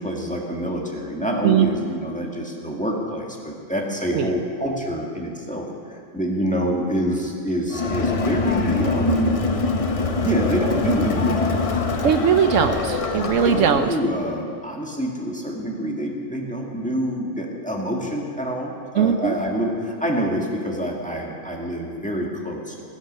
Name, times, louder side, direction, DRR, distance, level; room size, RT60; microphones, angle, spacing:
voice 1, 0.0-9.6 10.2-11.7 12.8-13.0 13.4-22.8, equal, 5° left, -1 dB, 1.8 m, -26 dB
Crowd, 7.7-14.0, left 4 dB, 35° left, 0.6 m, -24 dB
voice 2, 12.0-13.9 19.0-19.3, right 8 dB, 75° right, 8 dB, 1.0 m, -19 dB
17.0 x 11.5 x 5.4 m, 2.4 s
omnidirectional pair, 1.3 m